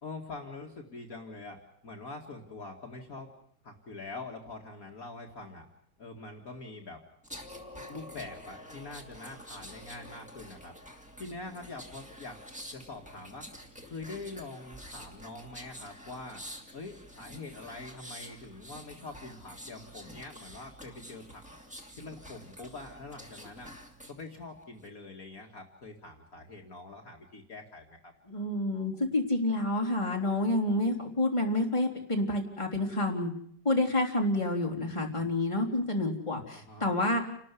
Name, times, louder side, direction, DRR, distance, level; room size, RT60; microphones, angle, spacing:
voice 1, 0.0-3.3 3.6-5.7 6.0-7.0 7.9-10.8 11.2-12.4 12.7-13.5 13.8-16.4 16.7-21.4 22.0-23.7 24.1-28.1 36.5-36.9, left 3 dB, 50° left, 2 dB, 2.6 m, -44 dB
sound 1, 7.2-24.2 24.6-24.9, equal, 5° right, 2.5 m, -48 dB
voice 2, 28.3-33.3 33.7-37.2, left 1 dB, 15° left, 1 dB, 3.5 m, -28 dB
29.0 x 13.0 x 9.8 m, 0.67 s
omnidirectional pair, 1.9 m